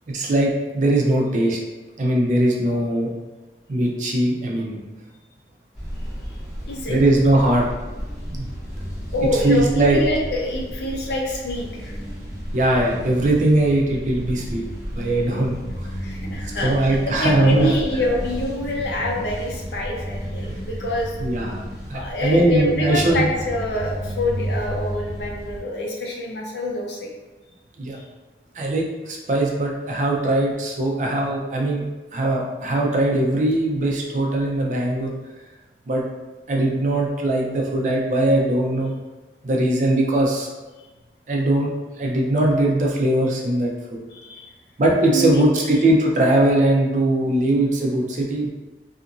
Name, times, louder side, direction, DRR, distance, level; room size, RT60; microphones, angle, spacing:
voice 1, 0.1-1.6 2.0-3.1 3.7-4.8 6.9-7.7 8.3-8.5 9.3-10.0 12.5-14.6 14.9-15.9 16.4-17.7 21.2-23.2 27.8-28.0 28.5-31.8 32.1-35.1 35.9-36.0 36.5-38.9 39.4-40.5 41.3-43.7 44.8-48.5, right 1 dB, 45° right, -1 dB, 0.4 m, -20 dB
sound 1, 5.7-25.6, equal, ahead, 1.1 m, -32 dB
voice 2, 6.7-7.0 9.1-12.0 16.0-21.2 21.9-27.1 27.9-28.0 44.1-44.5 45.1-45.8, left 1 dB, 75° left, 0 dB, 0.5 m, -26 dB
2.8 x 2.4 x 2.5 m, 1.2 s
head